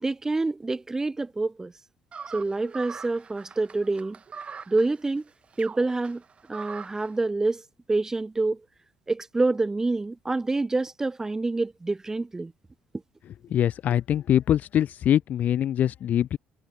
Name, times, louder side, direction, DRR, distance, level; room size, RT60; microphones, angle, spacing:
voice 1, 0.0-1.7 2.3-4.2 4.7-5.2 5.6-6.2 6.5-7.6 7.9-8.6 9.1-12.5, right 3 dB, 15° right, 0.3 m, -27 dB
sound 1, 2.1-7.1, right 6 dB, 35° right, 7.8 m, -42 dB
voice 2, 13.5-16.4, left 10 dB, 55° left, 0.5 m, -23 dB
supercardioid pair, 85°, 3 cm